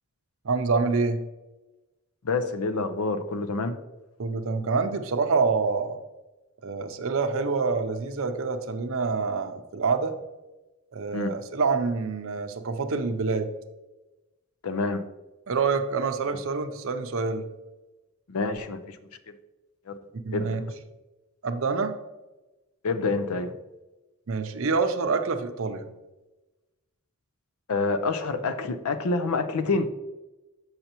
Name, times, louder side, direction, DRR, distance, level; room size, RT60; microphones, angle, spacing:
voice 1, 0.4-1.2 4.2-6.0 6.6-10.1 10.9-13.5 15.5-17.5 20.2-20.6 21.4-21.9 24.3-25.9, right 4 dB, 65° right, 7 dB, 0.6 m, -26 dB
voice 2, 2.2-3.8 11.1-11.3 14.6-15.0 18.3-19.0 19.9-20.0 20.3-20.5 22.8-23.5 27.7-29.9, left 3 dB, 85° left, 10 dB, 0.5 m, -27 dB
6.7 x 5.6 x 2.9 m, 1.1 s
head